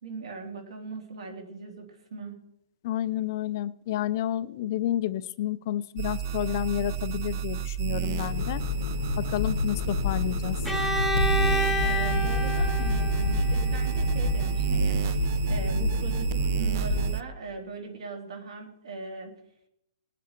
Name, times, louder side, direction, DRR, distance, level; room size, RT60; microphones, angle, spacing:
voice 1, 0.0-2.4 11.8-19.3, right 3 dB, 70° right, 2 dB, 3.3 m, -39 dB
voice 2, 2.8-8.6 9.2-10.6, left 12 dB, 30° left, 14 dB, 0.4 m, -30 dB
sound 1, 6.0-17.2, right 11 dB, 30° right, 0.4 m, -29 dB
sound 2, 8.1-17.2, left 7 dB, 65° left, 0.9 m, -30 dB
Bowed string instrument, 10.6-14.5, equal, ahead, 0.7 m, -30 dB
20.0 x 8.4 x 4.5 m, 0.81 s
hypercardioid pair, 175°, 3 cm